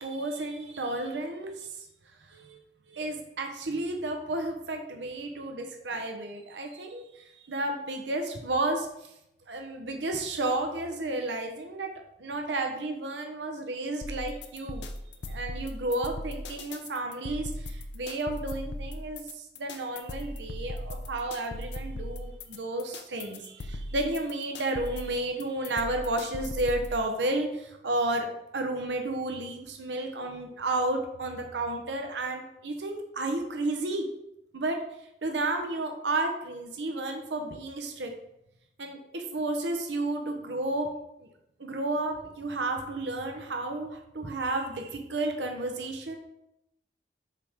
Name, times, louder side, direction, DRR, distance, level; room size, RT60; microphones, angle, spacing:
voice 1, 0.0-1.8 2.3-2.6 2.9-9.1 9.5-11.9 12.2-14.9 15.3-34.1 34.5-34.8 35.2-38.1 38.8-40.9 41.2-41.3 41.6-46.2, right 2 dB, 90° right, 3 dB, 0.8 m, -32 dB
sound 1, 14.0-27.0, left 1 dB, 85° left, 0.6 m, -38 dB
6.7 x 3.5 x 5.0 m, 0.82 s
head